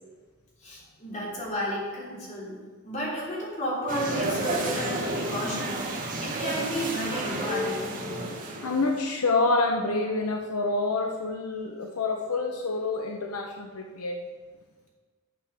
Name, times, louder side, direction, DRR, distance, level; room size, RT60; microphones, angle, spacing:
voice 1, 0.6-2.6 2.8-8.0, equal, 35° left, -5 dB, 3.4 m, -32 dB
sound 1, 3.9-9.0, right 2 dB, 40° right, 1.9 m, -31 dB
voice 2, 8.6-14.2, left 3 dB, 85° left, 2 dB, 0.9 m, -27 dB
11.5 x 6.7 x 5.9 m, 1.4 s
head